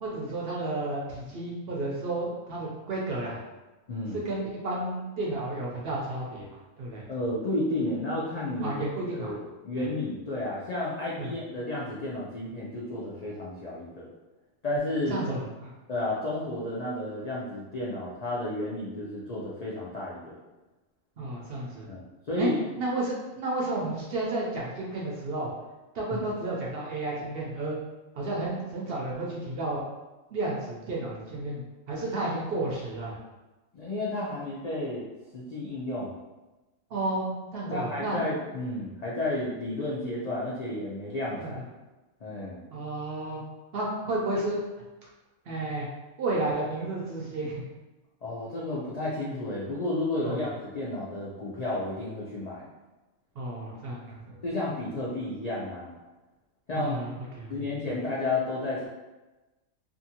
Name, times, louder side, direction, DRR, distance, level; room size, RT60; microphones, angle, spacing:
voice 1, 0.0-3.4 4.1-6.5 6.8-7.1 8.6-9.3 9.8-9.9 11.2-11.3 15.1-15.7 21.2-21.9 22.4-22.5 22.8-25.5 25.9-27.8 28.2-29.8 30.3-31.6 31.9-33.2 36.9-38.2 41.4-41.6 42.7-43.4 43.7-44.6 45.5-45.9 46.2-47.6 50.2-50.5 53.4-54.4 56.7-57.6 57.9-58.0, right 2 dB, 60° right, -4 dB, 0.7 m, -32 dB
voice 2, 3.9-4.2 7.1-8.8 9.2-9.4 9.6-14.1 14.6-15.2 15.9-20.4 21.9-22.6 26.1-26.2 33.7-35.0 35.3-36.2 37.7-41.6 42.2-42.6 48.2-52.7 54.4-55.9 56.7-57.0 57.5-58.9, left 2 dB, 75° left, -6 dB, 0.3 m, -32 dB
2.6 x 2.6 x 2.7 m, 1.1 s
omnidirectional pair, 1.4 m